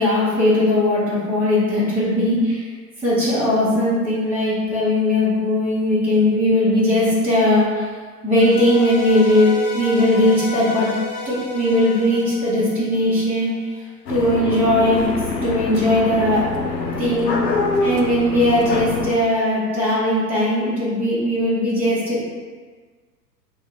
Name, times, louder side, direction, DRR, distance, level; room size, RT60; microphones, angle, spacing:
voice 1, 0.0-2.6 3.0-7.9 8.2-10.9 11.2-13.5 14.1-15.1 15.4-16.4 17.0-17.3 17.8-22.2, left 1 dB, 5° right, -10 dB, 0.7 m, -19 dB
sound 1, 8.3-13.5, left 4 dB, 40° left, 0.8 m, -32 dB
sound 2, 14.1-19.1, left 3 dB, 85° left, 0.6 m, -24 dB
3.5 x 2.1 x 4.2 m, 1.5 s
figure-of-eight pair, 100°, 49 cm